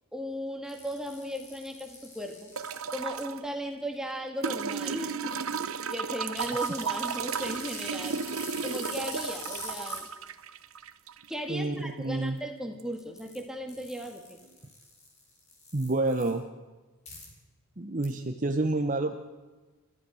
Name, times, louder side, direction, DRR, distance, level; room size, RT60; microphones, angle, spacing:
voice 1, 0.1-2.5 2.9-8.2 8.6-10.1 11.3-14.4, equal, 5° right, 3 dB, 2.0 m, -37 dB
sound 1, 0.7-3.2 6.4-10.0 12.9-13.4 13.7-16.3 17.1-17.3 18.0-18.1, left 2 dB, 30° left, 6.1 m, -44 dB
sound 2, 2.6-3.4 4.4-11.4 12.8-12.9, right 6 dB, 75° right, 1.0 m, -34 dB
voice 2, 11.5-12.4 15.7-16.4 17.8-19.1, right 2 dB, 35° right, 5 dB, 1.0 m, -28 dB
30.0 x 15.0 x 6.4 m, 1.3 s
head